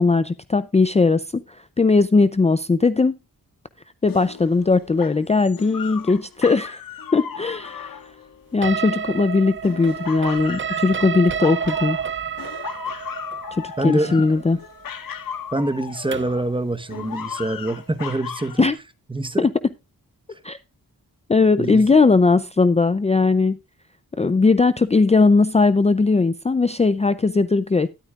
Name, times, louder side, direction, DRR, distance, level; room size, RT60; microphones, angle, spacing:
voice 1, 0.0-3.2 4.0-6.8 7.1-7.9 8.5-12.0 13.5-14.6 18.6-18.8 19.4-19.5 20.4-20.6 21.3-23.6 24.2-27.9, left 3 dB, 20° left, 0.5 m, -18 dB
sound 1, 4.1-9.1 9.6-12.1 12.4-16.5 16.9-18.7, left 7 dB, 75° left, 1.5 m, -36 dB
sound 2, 8.6-16.4, right 7 dB, 35° right, 0.5 m, -30 dB
voice 2, 13.8-14.2 15.5-18.7 19.1-19.5 21.6-21.8, right 2 dB, 15° right, 1.1 m, -25 dB
13.0 x 12.0 x 2.4 m
wide cardioid pair, 135°, 34 cm